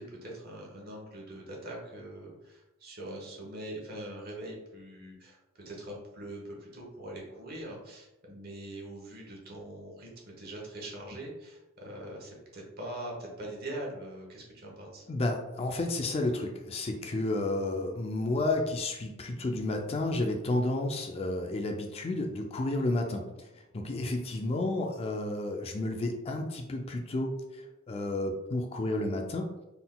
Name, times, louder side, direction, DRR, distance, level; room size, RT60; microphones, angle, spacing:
voice 1, 0.0-15.1, right 1 dB, 50° right, -1 dB, 1.1 m, -42 dB
voice 2, 15.1-23.5 23.7-29.5, left 2 dB, 30° left, 3 dB, 0.3 m, -31 dB
3.9 x 3.7 x 2.2 m, 0.98 s
head